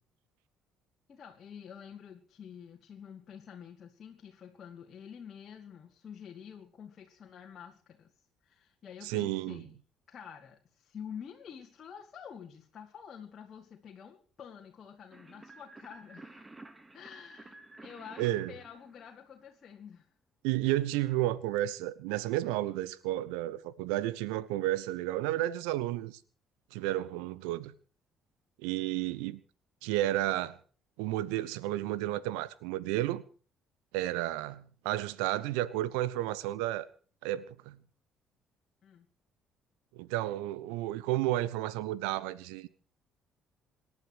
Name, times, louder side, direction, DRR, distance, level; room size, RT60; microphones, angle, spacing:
voice 1, 1.1-8.1 8.4-9.7 10.1-16.5 16.9-20.1 38.8-39.1, left 8 dB, 45° left, 2.5 m, -48 dB
voice 2, 9.0-9.6 18.2-18.5 20.4-26.2 26.7-27.7 28.6-29.4 29.8-30.6 31.0-33.2 33.9-36.9 37.2-37.8 39.9-42.7, right 15 dB, 70° right, 1.1 m, -32 dB
sound 1, 15.1-19.6, right 2 dB, 20° right, 2.4 m, -52 dB
26.5 x 11.0 x 4.8 m
figure-of-eight pair, 50°, 0 cm